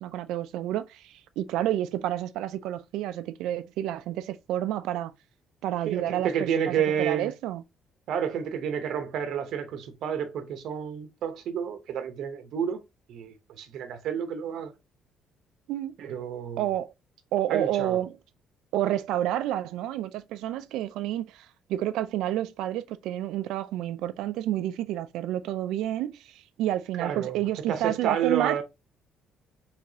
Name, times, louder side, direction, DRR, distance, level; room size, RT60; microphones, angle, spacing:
voice 1, 0.0-5.1 5.6-7.6 15.7-15.9 16.6-16.9 17.3-18.2 18.7-28.6, right 13 dB, 90° right, 0.4 m, -29 dB
voice 2, 5.8-7.3 8.1-12.8 13.1-14.7 16.0-16.7 17.5-18.0 27.0-28.6, right 8 dB, 60° right, 0.8 m, -30 dB
4.8 x 3.5 x 2.7 m
cardioid pair, 160°, 0 cm